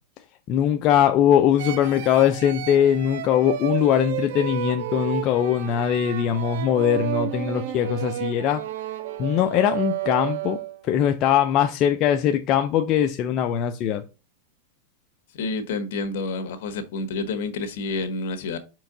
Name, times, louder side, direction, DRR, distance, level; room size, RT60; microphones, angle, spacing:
voice 1, 0.5-8.6 9.2-14.0, left 10 dB, 35° left, 0.5 m, -21 dB
sound 1, 1.6-10.9, right 12 dB, 65° right, 0.7 m, -31 dB
voice 2, 15.4-18.6, left 3 dB, 65° left, 1.3 m, -29 dB
5.5 x 4.6 x 3.8 m
supercardioid pair, 150°, 0 cm